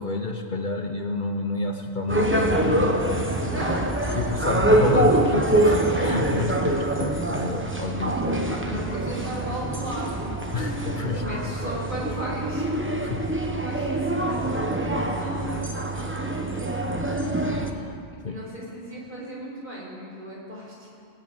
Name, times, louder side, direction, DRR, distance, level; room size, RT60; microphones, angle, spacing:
voice 1, 0.0-3.8 4.1-8.6 10.5-11.5 13.0-13.3 17.5-18.0 18.2-18.4, left 3 dB, 50° left, 4 dB, 1.0 m, -30 dB
sound 1, 2.1-17.7, right 1 dB, 10° right, 1.0 m, -25 dB
voice 2, 3.5-4.1 8.4-10.3 11.2-12.7 13.1-16.7 18.3-21.0, right 1 dB, 45° right, -5 dB, 5.6 m, -36 dB
20.0 x 8.2 x 8.9 m, 2.4 s
omnidirectional pair, 1.1 m